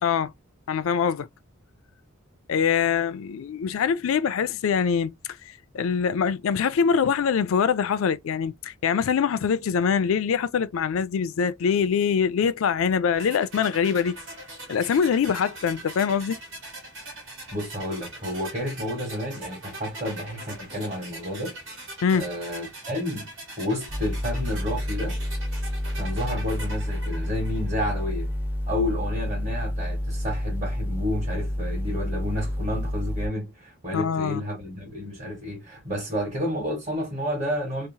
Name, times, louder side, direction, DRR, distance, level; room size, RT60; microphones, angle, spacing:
voice 1, 0.0-0.3 0.7-1.3 2.5-5.1 5.4-14.2 14.7-16.4 22.0-22.3 33.9-34.4, left 7 dB, 75° left, 0.4 m, -24 dB
sound 1, 13.2-28.1, right 2 dB, 70° right, 1.4 m, -41 dB
voice 2, 17.5-21.5 22.1-23.3 23.6-25.2 25.9-28.3 28.7-37.9, left 1 dB, 35° right, 1.2 m, -31 dB
sound 2, 23.9-33.3, left 1 dB, 10° right, 0.4 m, -29 dB
2.8 x 2.0 x 2.6 m
head